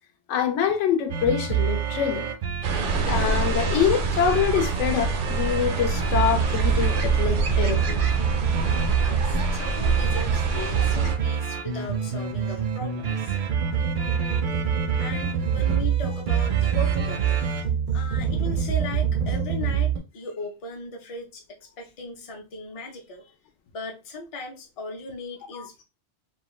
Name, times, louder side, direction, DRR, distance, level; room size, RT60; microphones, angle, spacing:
voice 1, 0.3-2.3 3.1-8.0 25.5-25.7, left 8 dB, 80° left, 0.9 m, -25 dB
sound 1, 1.1-20.0, right 8 dB, 60° right, 0.5 m, -26 dB
sound 2, 2.6-11.2, right 2 dB, 85° right, 0.9 m, -27 dB
voice 2, 9.0-13.4 15.0-23.3 23.7-25.8, left 2 dB, 40° left, 0.5 m, -38 dB
2.4 x 2.2 x 3.0 m
omnidirectional pair, 1.2 m